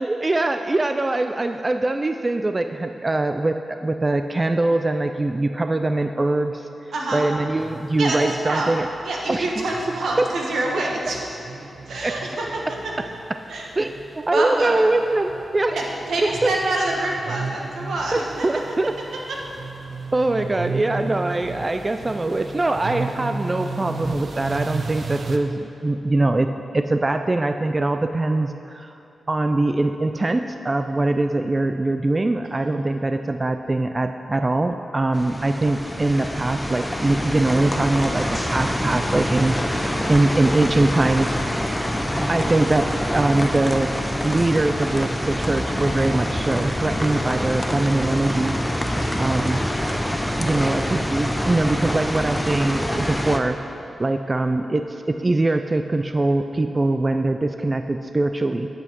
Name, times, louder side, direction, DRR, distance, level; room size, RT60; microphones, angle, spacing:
voice 1, 0.0-6.6 7.1-8.9 9.3-9.5 10.2-10.3 12.0-12.1 13.8-15.8 16.2-16.5 18.1-18.9 20.1-26.5 26.7-28.9 29.3-39.5 40.1-41.4 42.3-43.9 44.2-48.6 49.2-49.6 50.4-53.6 54.0-58.7, right 2 dB, 30° right, 7 dB, 0.3 m, -22 dB
voice 2, 6.9-7.3 8.0-8.7 9.0-11.2 11.9-12.9 13.5-13.7 14.3-14.8 15.7-18.5 32.4-32.8 49.0-49.1, right 2 dB, 85° right, -1 dB, 1.4 m, -26 dB
sound 1, 7.6-25.4, right 4 dB, 60° right, 0.6 m, -35 dB
sound 2, 35.1-53.4, equal, 10° left, 0.6 m, -26 dB
8.5 x 7.9 x 4.6 m, 3.0 s
cardioid pair, 75°, 0 cm